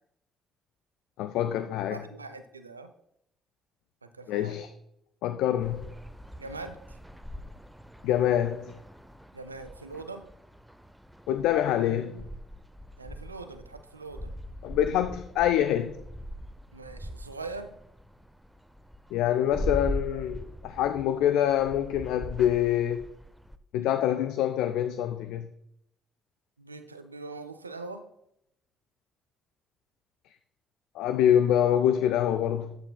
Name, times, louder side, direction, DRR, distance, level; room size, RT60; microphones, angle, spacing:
voice 1, 1.2-2.0 4.3-4.7 5.2-5.9 8.0-8.8 11.3-12.3 14.6-16.0 19.1-23.0 23.7-25.5 31.0-32.8, left 10 dB, 65° left, 0.4 m, -25 dB
voice 2, 1.9-2.9 4.0-4.6 6.4-7.0 9.3-10.3 13.0-14.3 16.7-17.7 26.6-28.1, right 3 dB, 85° right, 0.5 m, -42 dB
sound 1, 5.6-23.6, left 1 dB, 5° right, 0.6 m, -41 dB
12.5 x 8.7 x 2.3 m
figure-of-eight pair, 45°, 0 cm